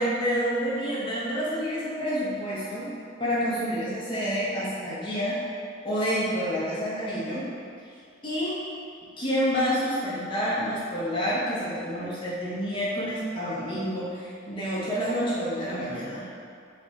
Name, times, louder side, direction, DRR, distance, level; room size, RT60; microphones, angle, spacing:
voice 1, 0.0-2.9 3.2-5.4 5.8-7.5 7.9-8.0 8.2-8.6 9.2-16.2, equal, 25° left, -8 dB, 0.8 m, -28 dB
3.3 x 2.3 x 4.0 m, 2.4 s
head